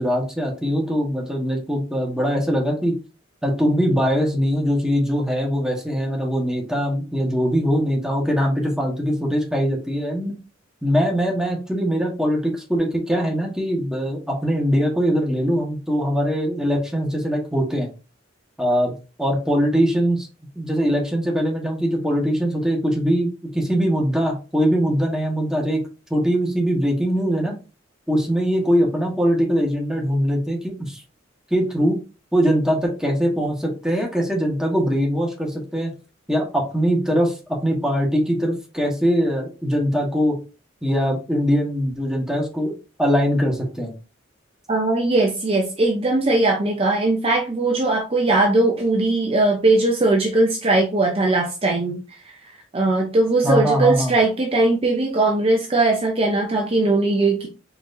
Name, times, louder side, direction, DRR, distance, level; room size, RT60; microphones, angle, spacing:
voice 1, 0.0-2.9 3.4-10.4 10.8-17.9 18.6-18.9 19.2-20.3 20.5-27.5 28.1-31.0 31.5-32.0 32.3-35.9 36.3-37.4 37.6-40.4 40.8-42.7 43.0-43.9 53.4-54.1, equal, 5° right, -1 dB, 1.2 m, -22 dB
voice 2, 44.7-57.5, right 2 dB, 30° right, 1 dB, 0.6 m, -20 dB
4.4 x 3.9 x 2.6 m, 0.32 s
head